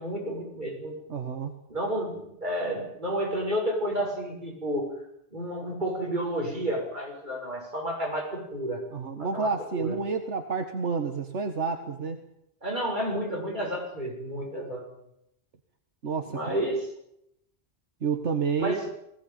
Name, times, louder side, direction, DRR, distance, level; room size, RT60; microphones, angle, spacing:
voice 1, 0.0-1.0 1.7-4.9 5.3-8.9 9.1-9.5 9.8-10.0 12.6-14.9 16.3-16.9 18.6-18.9, equal, 40° right, 0 dB, 6.8 m, -31 dB
voice 2, 1.1-1.6 8.9-12.2 16.0-16.6 18.0-18.8, right 5 dB, 80° right, 6 dB, 1.9 m, -29 dB
20.5 x 17.0 x 9.1 m, 0.78 s
omnidirectional pair, 1.2 m